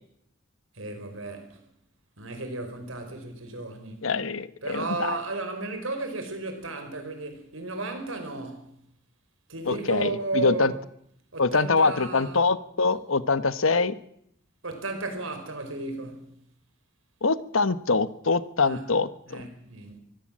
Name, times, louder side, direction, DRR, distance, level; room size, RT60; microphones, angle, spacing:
voice 1, 0.7-1.6 2.2-4.1 4.6-8.7 9.5-10.8 11.3-12.4 14.6-16.3 18.6-18.8 19.3-20.0, right 2 dB, 90° right, 5.1 m, -34 dB
voice 2, 4.0-5.1 9.7-10.7 11.4-13.9 17.2-19.4, left 4 dB, 90° left, 1.2 m, -24 dB
23.5 x 16.5 x 7.6 m
head